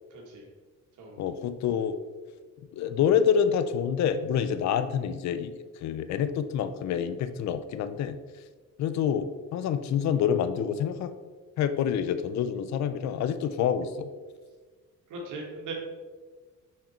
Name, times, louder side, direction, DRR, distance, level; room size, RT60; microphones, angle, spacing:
voice 1, 0.1-0.4 1.0-1.2 15.1-15.7, right 3 dB, 85° right, 0 dB, 1.8 m, -39 dB
voice 2, 1.2-2.0 2.7-8.2 8.8-9.3 9.5-11.1 11.6-14.1, left 8 dB, 65° left, 11 dB, 0.5 m, -27 dB
5.8 x 4.9 x 4.3 m, 1.4 s
cardioid pair, 90°, 30 cm